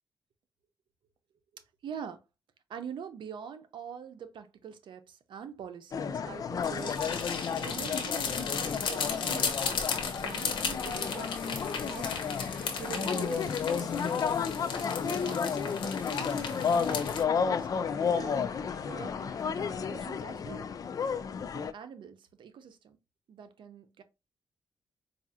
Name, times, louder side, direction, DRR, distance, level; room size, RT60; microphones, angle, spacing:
voice 1, 1.5-2.2 2.7-9.5 10.2-12.3 12.8-14.3 15.0-18.5 18.9-20.7 21.5-23.0 23.3-24.0, right 7 dB, 75° right, 0.7 m, -45 dB
sound 1, 5.9-21.7, left 6 dB, 45° left, 0.3 m, -32 dB
sound 2, 6.6-17.2, left 6 dB, 90° left, 0.9 m, -36 dB
sound 3, 10.6-20.0, left 1 dB, 10° left, 1.1 m, -53 dB
4.7 x 2.4 x 2.7 m
cardioid pair, 110°, 8 cm